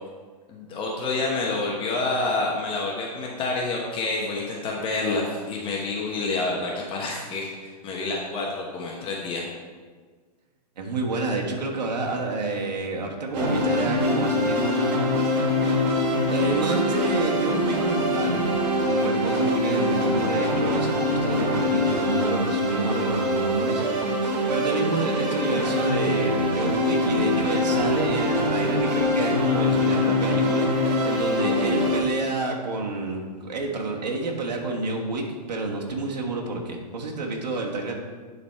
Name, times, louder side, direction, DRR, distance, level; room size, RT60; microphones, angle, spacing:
voice 1, 0.5-9.4, left 3 dB, 25° left, -2 dB, 1.1 m, -28 dB
voice 2, 10.8-15.4 16.3-18.5 18.8-23.8 24.2-37.9, right 3 dB, 80° right, 0 dB, 1.6 m, -29 dB
sound 1, 13.3-32.0, left 1 dB, 45° right, 2.0 m, -24 dB
10.5 x 4.1 x 4.5 m, 1.5 s
hypercardioid pair, 125°, 21 cm